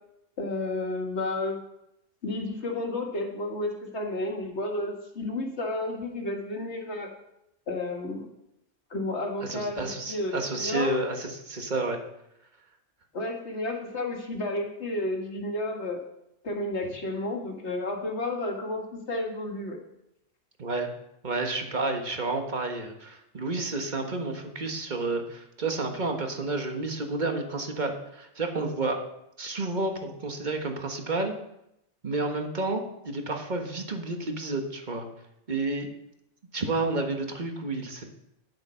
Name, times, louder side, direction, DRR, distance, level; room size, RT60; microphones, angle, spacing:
voice 1, 0.4-1.6 2.2-7.1 7.7-8.3 8.9-9.8 10.1-11.0 13.1-16.0 16.4-19.8, left 2 dB, 65° left, 2 dB, 1.9 m, -31 dB
voice 2, 9.4-12.0 20.6-20.9 21.2-29.0 29.4-31.3 32.0-35.1 35.5-35.9 36.5-38.1, right 2 dB, 40° right, 4 dB, 1.5 m, -30 dB
10.0 x 8.1 x 5.7 m, 0.82 s
omnidirectional pair, 1.2 m